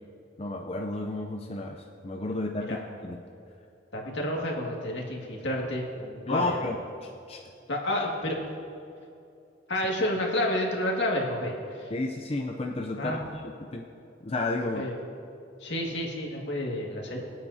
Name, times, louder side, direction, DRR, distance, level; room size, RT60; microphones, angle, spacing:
voice 1, 0.4-3.2 6.3-7.4 11.9-13.4 13.7-13.8 14.2-14.8, left 2 dB, 30° left, 2 dB, 0.5 m, -32 dB
voice 2, 3.9-6.6 7.7-8.4 9.7-11.9 13.0-13.2 14.7-15.0 15.6-17.2, left 1 dB, 70° left, -1 dB, 2.0 m, -30 dB
23.0 x 8.9 x 2.7 m, 2.6 s
head